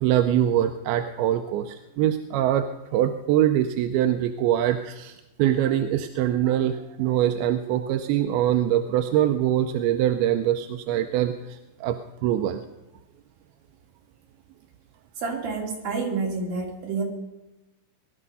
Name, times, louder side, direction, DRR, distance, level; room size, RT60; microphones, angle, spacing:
voice 1, 0.0-2.7 2.9-12.6, right 11 dB, 90° right, 7 dB, 2.6 m, -23 dB
voice 2, 15.2-17.0, right 4 dB, 70° right, 0 dB, 4.5 m, -28 dB
20.5 x 12.0 x 5.5 m, 1.0 s
omnidirectional pair, 4.3 m